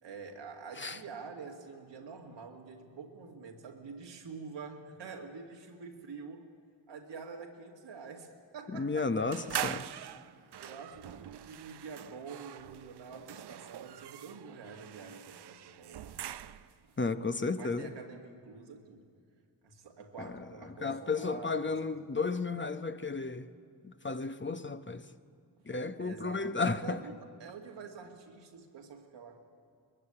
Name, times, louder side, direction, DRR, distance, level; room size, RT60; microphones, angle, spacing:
voice 1, 0.0-6.5 6.9-9.2 10.5-16.2 16.5-16.6 17.6-19.1 19.6-22.0 25.7-29.4, right 5 dB, 90° right, 2 dB, 2.1 m, -47 dB
voice 2, 8.8-9.8 17.0-17.9 20.2-20.3 20.8-23.5 23.8-25.0 25.7-27.0, left 4 dB, 25° left, 10 dB, 1.0 m, -33 dB
sound 1, 9.3-16.8, right 10 dB, 65° right, 0.7 m, -43 dB
21.0 x 15.5 x 9.8 m, 2.4 s
cardioid pair, 50°, 42 cm